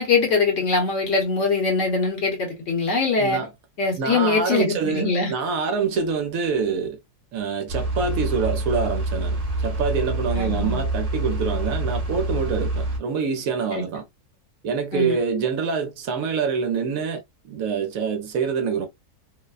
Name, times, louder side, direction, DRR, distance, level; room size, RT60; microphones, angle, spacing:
voice 1, 0.0-3.4 3.8-5.3 10.3-10.8 13.7-13.8 14.9-15.2, left 4 dB, 55° left, 1.3 m, -22 dB
voice 2, 3.2-3.5 4.0-7.0 7.3-14.1 14.6-18.9, right 5 dB, 70° right, 1.0 m, -26 dB
sound 1, 7.7-13.0, right 2 dB, 30° right, 0.7 m, -26 dB
2.7 x 2.1 x 2.3 m
omnidirectional pair, 1.7 m